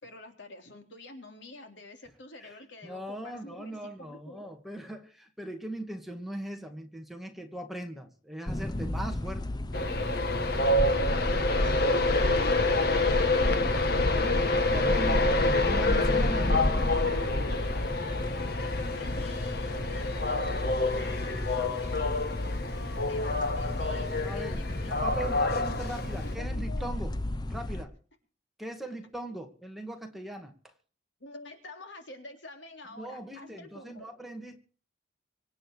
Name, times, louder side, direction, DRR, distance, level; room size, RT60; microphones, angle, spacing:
voice 1, 0.0-4.5 11.0-13.3 18.7-25.3 25.6-27.0 31.2-34.1, left 2 dB, 75° left, 5 dB, 3.6 m, -47 dB
voice 2, 2.8-9.6 14.0-17.4 24.2-27.2 27.5-28.0 28.6-30.7 32.9-34.6, right 1 dB, ahead, 3 dB, 2.2 m, -40 dB
sound 1, 8.5-27.8, left 1 dB, 20° left, 0.8 m, -32 dB
Train, 9.7-26.3, left 2 dB, 55° left, 1.8 m, -28 dB
25.0 x 9.2 x 4.7 m, 0.40 s
head